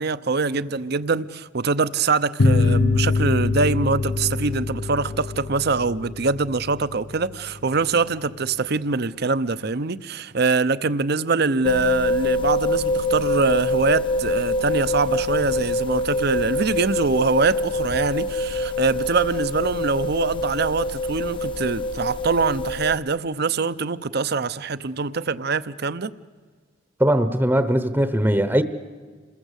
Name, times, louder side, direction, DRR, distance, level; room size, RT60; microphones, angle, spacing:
voice 1, 0.0-26.1, right 4 dB, 55° right, 0.8 m, -24 dB
sound 1, 2.4-7.5, left 3 dB, 70° left, 1.0 m, -24 dB
sound 2, 11.6-23.0, left 1 dB, 25° left, 0.9 m, -25 dB
voice 2, 27.0-28.6, right 1 dB, 10° right, 0.9 m, -20 dB
27.5 x 21.5 x 8.2 m
head